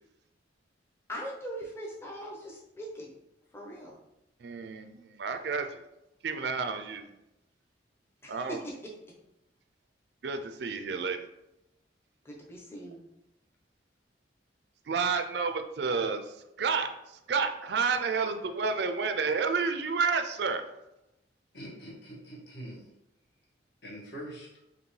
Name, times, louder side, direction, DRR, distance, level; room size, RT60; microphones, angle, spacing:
voice 1, 1.1-3.1 3.5-4.0 8.2-8.7 12.2-13.0, equal, 15° left, -3 dB, 0.7 m, -40 dB
voice 2, 4.4-5.8 6.2-7.1 8.3-8.6 10.2-11.2 14.9-16.2 16.6-16.9 17.3-20.6, right 5 dB, 60° right, 7 dB, 0.4 m, -30 dB
voice 3, 21.5-22.9 23.8-24.5, right 1 dB, 55° left, -4 dB, 1.5 m, -43 dB
5.1 x 2.7 x 3.2 m, 0.88 s
head